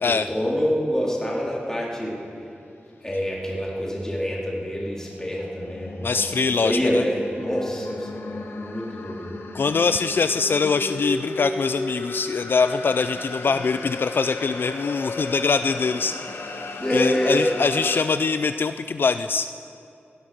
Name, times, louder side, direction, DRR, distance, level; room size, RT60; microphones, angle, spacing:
voice 1, 0.0-2.1 3.0-6.2 6.6-9.3 16.8-17.4, equal, 15° left, -4 dB, 3.2 m, -26 dB
sound 1, 4.8-18.0, left 2 dB, 85° left, 1.2 m, -35 dB
voice 2, 6.0-7.0 9.5-16.2 16.9-19.5, left 5 dB, 60° left, 11 dB, 0.3 m, -23 dB
16.5 x 11.5 x 6.1 m, 2.6 s
wide cardioid pair, 95°, 4 cm